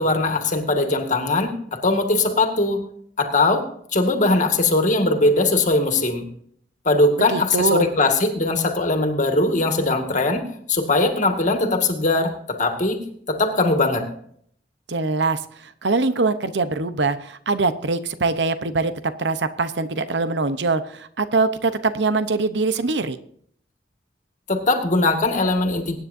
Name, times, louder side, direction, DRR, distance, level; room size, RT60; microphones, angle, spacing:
voice 1, 0.0-2.8 3.2-3.7 3.9-6.2 6.9-13.0 13.3-14.1 24.5-25.9, left 2 dB, 45° left, 4 dB, 1.9 m, -20 dB
voice 2, 7.3-7.9 14.9-23.2, right 3 dB, 85° right, 11 dB, 0.9 m, -23 dB
23.5 x 9.7 x 2.7 m, 0.63 s
head